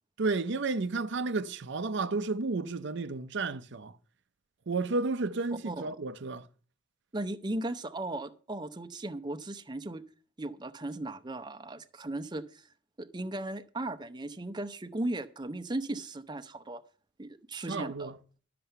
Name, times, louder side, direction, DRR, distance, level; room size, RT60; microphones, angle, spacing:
voice 1, 0.2-3.9 4.7-6.5 17.7-18.2, right 3 dB, 65° right, 0.6 m, -32 dB
voice 2, 7.1-10.0 10.4-12.7 13.0-16.8 17.2-18.1, right 2 dB, 20° right, 0.7 m, -37 dB
12.5 x 6.8 x 6.8 m
head